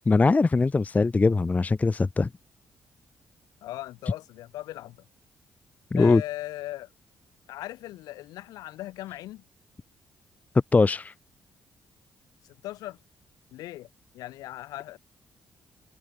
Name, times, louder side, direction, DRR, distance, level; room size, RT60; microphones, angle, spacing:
voice 1, 0.1-2.3 5.9-6.2 10.7-11.1, left 3 dB, 25° left, 0.4 m, -21 dB
voice 2, 3.6-5.0 5.9-6.9 7.5-9.4 12.4-13.0 13.5-13.9 14.1-15.0, left 16 dB, 75° left, 2.8 m, -38 dB
hypercardioid pair, 40°, 6 cm